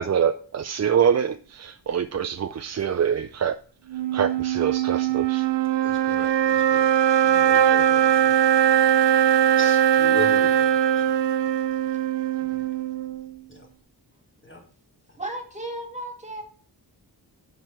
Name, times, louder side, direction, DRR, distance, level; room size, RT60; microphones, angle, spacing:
voice 1, 0.0-3.6 4.1-5.5, right 8 dB, 40° right, 0.4 m, -25 dB
sound 1, 3.9-13.3, right 10 dB, 80° right, 0.8 m, -21 dB
voice 2, 5.8-6.9 7.2-8.3 9.6-11.1 12.4-12.6 13.5-13.7 14.4-14.6, left 3 dB, 30° left, 2.2 m, -38 dB
voice 3, 15.2-16.4, right 1 dB, 15° right, 2.2 m, -34 dB
7.6 x 5.0 x 5.9 m
wide cardioid pair, 90°, 42 cm